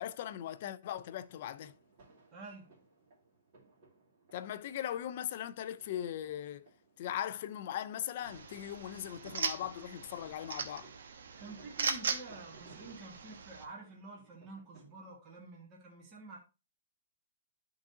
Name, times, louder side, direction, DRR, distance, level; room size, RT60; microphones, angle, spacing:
voice 1, 0.0-1.7 4.3-6.7 7.0-10.9, left 11 dB, 35° left, 0.4 m, -39 dB
sound 1, 1.3-15.1, right 3 dB, 40° right, 2.2 m, -62 dB
voice 2, 2.3-2.7 11.4-16.4, right 3 dB, 15° right, 1.5 m, -49 dB
sound 2, 8.3-13.6, right 5 dB, 65° right, 1.0 m, -39 dB
11.0 x 3.9 x 2.7 m
hypercardioid pair, 175°, 0 cm